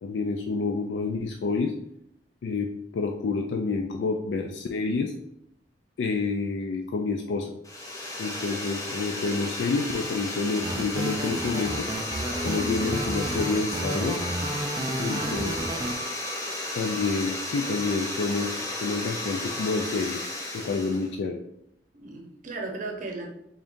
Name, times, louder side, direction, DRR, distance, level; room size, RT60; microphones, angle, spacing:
voice 1, 0.0-1.7 2.4-5.1 6.0-7.5 8.2-11.9 12.4-14.3 15.0-15.5 16.7-20.2 20.5-21.4, left 4 dB, 90° left, 3 dB, 0.4 m, -28 dB
sound 1, 7.6-21.1, left 1 dB, 20° left, 0.7 m, -33 dB
sound 2, 10.6-15.9, right 1 dB, 20° right, 0.3 m, -31 dB
voice 2, 15.1-15.9 21.9-23.3, right 3 dB, 50° right, 1 dB, 0.7 m, -37 dB
3.7 x 3.5 x 2.6 m, 0.77 s
head